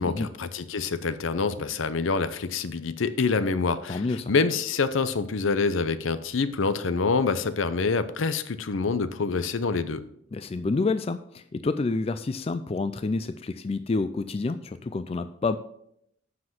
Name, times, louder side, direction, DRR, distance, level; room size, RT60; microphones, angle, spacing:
voice 1, 0.0-10.0, left 4 dB, 75° left, 13 dB, 0.6 m, -26 dB
voice 2, 3.9-4.3 10.3-15.6, left 3 dB, 30° left, 11 dB, 0.3 m, -28 dB
7.6 x 5.9 x 5.9 m, 0.71 s
head